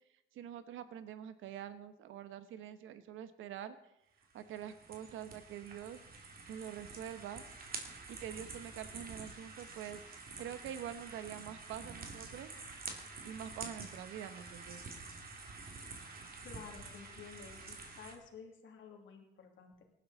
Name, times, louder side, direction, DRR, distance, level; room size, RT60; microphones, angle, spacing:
voice 1, 0.3-3.8 4.3-7.4 8.1-12.5 13.2-14.8, right 9 dB, 85° right, 12 dB, 1.1 m, -46 dB
sound 1, 4.2-18.2, right 4 dB, 50° right, 2.6 m, -48 dB
voice 2, 16.4-19.8, left 6 dB, 70° left, 3 dB, 2.6 m, -52 dB
18.5 x 11.5 x 4.0 m, 0.85 s
cardioid pair, 90°, 20 cm